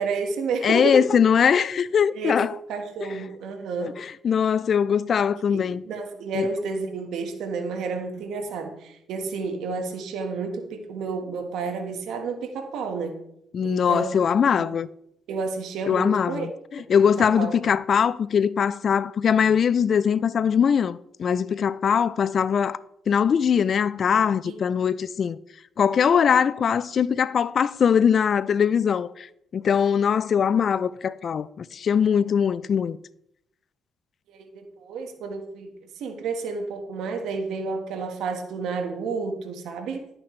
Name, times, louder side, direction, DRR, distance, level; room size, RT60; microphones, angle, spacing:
voice 1, 0.0-1.1 2.1-4.0 5.3-13.2 13.6-14.1 14.4-14.7 15.3-16.5 17.2-17.5 24.4-24.6 34.3-35.7 36.0-40.1, right 4 dB, 80° right, 1.5 m, -31 dB
voice 2, 0.6-2.5 3.8-5.8 6.3-6.5 13.5-14.9 15.9-22.8 23.1-25.4 25.8-29.3 29.5-33.0, left 7 dB, 50° left, 0.3 m, -21 dB
12.0 x 8.7 x 3.2 m
cardioid pair, 90°, 0 cm